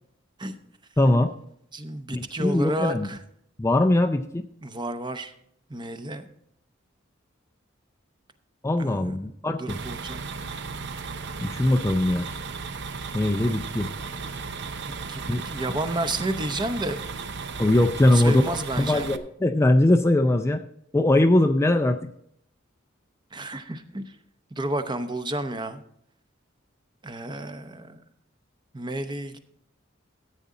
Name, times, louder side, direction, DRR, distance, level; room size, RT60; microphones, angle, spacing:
voice 1, 1.0-1.3 2.1-3.1 3.6-4.5 8.6-9.8 11.4-12.3 13.1-13.9 15.3-15.4 17.6-20.6 20.9-22.1, left 1 dB, 15° left, 6 dB, 0.4 m, -21 dB
voice 2, 1.7-3.2 4.6-5.3 5.7-6.3 8.8-10.3 14.9-17.0 18.1-19.1 23.3-24.2 24.5-25.8 27.0-28.1 28.7-29.4, right 1 dB, 25° right, 9 dB, 0.8 m, -31 dB
sound 1, 9.7-19.2, right 4 dB, 60° right, 0.7 m, -35 dB
14.0 x 8.3 x 3.7 m, 0.71 s
head